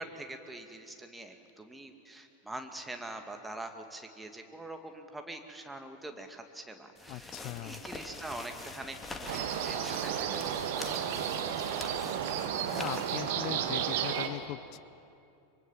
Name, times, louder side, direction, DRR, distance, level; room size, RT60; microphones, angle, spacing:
voice 1, 0.0-11.2 11.6-11.8, right 1 dB, 5° right, 5 dB, 2.2 m, -44 dB
sound 1, 7.0-13.2, left 2 dB, 10° left, 2.2 m, -45 dB
voice 2, 7.1-7.8 12.7-14.8, left 17 dB, 45° left, 19 dB, 0.5 m, -39 dB
sound 2, 9.3-14.3, right 9 dB, 55° right, 1.6 m, -33 dB
24.5 x 23.5 x 7.3 m, 2.6 s
figure-of-eight pair, 85°, 0 cm